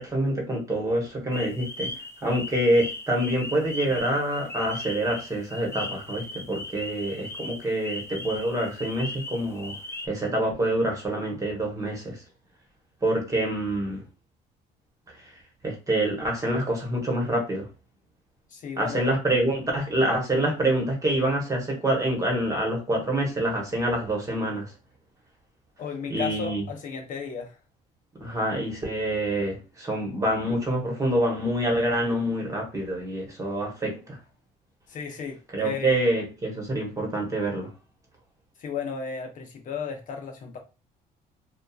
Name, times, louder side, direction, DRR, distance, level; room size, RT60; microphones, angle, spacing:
voice 1, 0.0-1.9 2.2-9.7 10.1-12.2 13.0-14.0 15.6-17.7 18.8-24.7 26.1-26.6 28.2-34.2 35.5-37.7, right 1 dB, 20° right, 1.2 m, -26 dB
sound 1, 1.3-10.1, left 2 dB, 15° left, 0.4 m, -38 dB
voice 2, 18.5-19.2 25.8-27.6 34.9-36.0 38.6-40.6, left 6 dB, 50° left, 0.8 m, -34 dB
2.8 x 2.3 x 2.3 m
cardioid pair, 110°, 17 cm